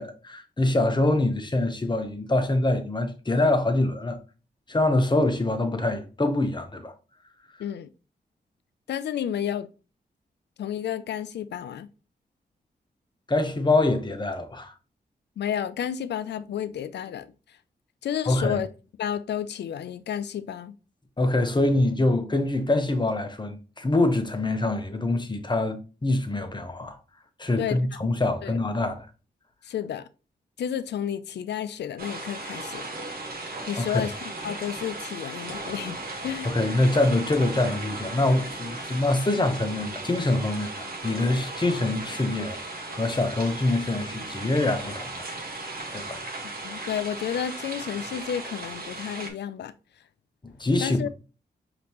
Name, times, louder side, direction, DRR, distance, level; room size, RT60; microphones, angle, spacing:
voice 1, 0.0-4.2 4.7-6.9 13.3-14.7 18.3-18.6 21.2-27.0 27.4-29.1 33.8-34.0 36.4-45.3 45.9-46.3 50.6-51.1, left 2 dB, 25° left, 0.9 m, -25 dB
voice 2, 7.6-7.9 8.9-9.7 10.6-11.9 15.4-17.3 18.0-18.7 19.0-20.7 27.6-28.0 28.4-28.6 29.6-30.0 30.6-32.8 33.7-36.0 36.2-36.6 46.6-49.7 50.8-51.1, left 9 dB, 80° left, 0.4 m, -31 dB
sound 1, 32.0-49.3, right 2 dB, 60° right, 1.3 m, -36 dB
5.1 x 2.9 x 3.0 m
cardioid pair, 55°, 17 cm